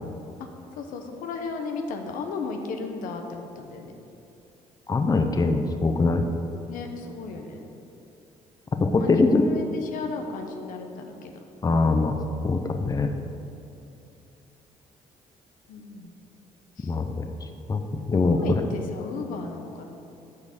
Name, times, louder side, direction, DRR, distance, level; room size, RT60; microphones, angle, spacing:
voice 1, 0.8-3.9 6.7-7.6 9.0-11.3 15.7-16.1 16.8-16.9 18.2-19.9, left 4 dB, 75° left, 4 dB, 1.0 m, -35 dB
voice 2, 4.9-6.3 8.8-9.5 11.6-12.2 12.4-13.1 16.8-17.3 17.7-18.6, left 3 dB, 25° left, 6 dB, 0.7 m, -22 dB
8.4 x 5.3 x 6.7 m, 2.7 s
supercardioid pair, 75°, 14 cm